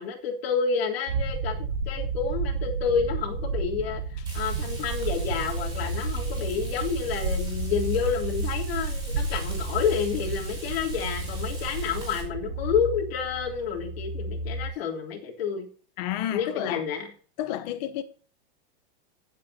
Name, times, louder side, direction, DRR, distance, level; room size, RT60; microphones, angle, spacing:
voice 1, 0.0-15.7 16.3-17.1, left 6 dB, 75° left, 3.5 m, -29 dB
sound 1, 1.1-12.8, right 5 dB, 85° right, 2.2 m, -32 dB
sound 2, 3.0-14.7, equal, 10° left, 5.1 m, -37 dB
Frying (food), 4.3-12.2, right 2 dB, 15° right, 5.4 m, -44 dB
voice 2, 16.0-16.8 17.4-18.0, left 12 dB, 45° left, 1.0 m, -30 dB
17.5 x 7.8 x 2.8 m
supercardioid pair, 170°, 30 cm